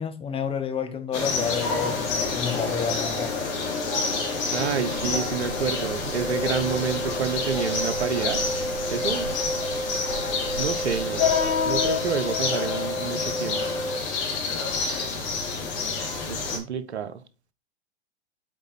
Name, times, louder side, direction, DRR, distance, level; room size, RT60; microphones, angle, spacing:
voice 1, 0.0-3.3, left 7 dB, 15° left, 1.1 m, -30 dB
sound 1, 1.1-16.6, left 4 dB, 50° left, 3.1 m, -28 dB
voice 2, 4.5-8.4 8.9-9.3 10.6-11.3 11.6-13.7 16.2-17.2, right 7 dB, 75° right, 0.9 m, -29 dB
sound 2, 4.9-12.0, right 7 dB, 55° right, 3.2 m, -40 dB
Wind instrument woodwind instrument, 6.2-14.0, equal, 10° right, 1.4 m, -32 dB
8.0 x 4.0 x 4.2 m
figure-of-eight pair, 100°, 33 cm